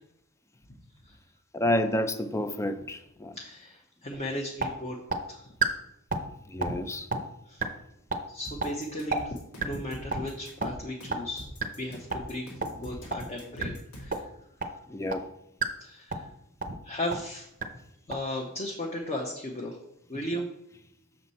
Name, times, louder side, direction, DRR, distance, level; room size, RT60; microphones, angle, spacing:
voice 1, 1.5-3.3 6.5-7.1 14.9-15.3, left 1 dB, 15° left, 0.4 m, -29 dB
voice 2, 3.4-5.0 5.3-5.5 7.5-7.6 8.3-9.4 9.6-11.5 11.8-14.2 15.8-16.3 16.8-17.5 18.1-19.8 20.1-20.5, left 1 dB, 30° left, 0.8 m, -36 dB
sound 1, 4.1-4.2 4.6-4.7 5.1-5.2 5.6-5.7 6.1-6.3 6.6-6.8 7.1-7.2 7.6-7.7 8.1-8.2 8.6-8.7 9.1-9.2 9.6-9.8 10.1-10.2 10.6-10.7 11.1-11.2 11.6-11.7 12.1-12.2 12.6-12.7 13.1-13.3 13.6-13.7 14.1-14.2 14.6-14.7 15.1-15.2 15.6-15.7 16.1-16.3 16.6-16.7 17.1-17.2 17.6-17.7 18.1-18.2, right 5 dB, 35° right, 0.6 m, -28 dB
sound 2, 8.4-14.3, equal, 90° left, 2.0 m, -44 dB
6.4 x 5.9 x 4.1 m
head